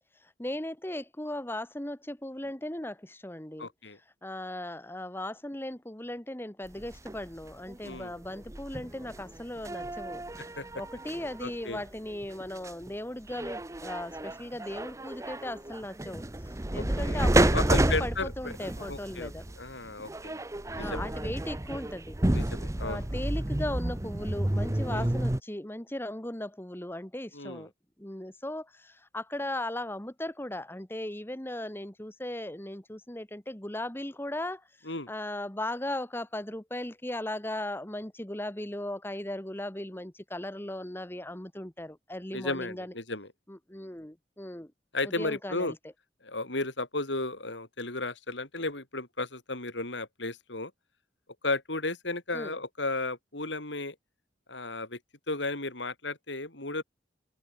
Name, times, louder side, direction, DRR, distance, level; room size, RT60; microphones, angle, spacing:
voice 1, 0.4-3.7 4.2-10.2 10.8-16.2 16.7-19.4 20.7-22.1 22.8-27.7 28.0-34.6 35.1-42.9 43.5-44.7 45.0-45.8 52.3-52.6, left 1 dB, 10° left, 1.5 m, -37 dB
voice 2, 3.6-4.0 7.8-8.1 10.4-10.7 11.4-11.8 16.7-17.2 17.5-20.4 20.8-21.1 22.3-23.1 24.9-25.1 27.3-27.7 34.9-35.1 42.3-43.3 44.9-45.7 46.2-50.7 51.4-54.0 54.5-55.0 55.3-56.8, left 2 dB, 85° left, 5.2 m, -34 dB
sound 1, 6.7-12.9 13.3-25.4, right 1 dB, 15° right, 0.8 m, -30 dB
open air
head